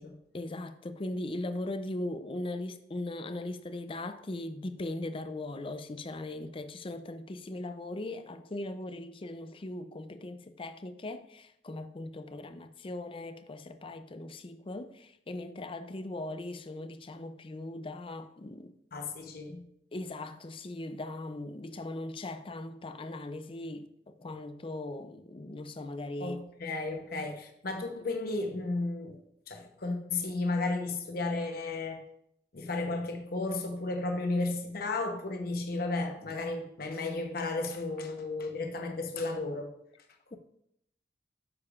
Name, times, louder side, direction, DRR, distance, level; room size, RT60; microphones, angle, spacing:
voice 1, 0.3-18.7 19.9-26.4 40.3-40.4, left 2 dB, 30° left, 0.5 m, -39 dB
voice 2, 18.9-19.6 26.2-32.0 32.5-39.7, left 3 dB, 55° left, 0.9 m, -33 dB
9.5 x 6.8 x 2.5 m
head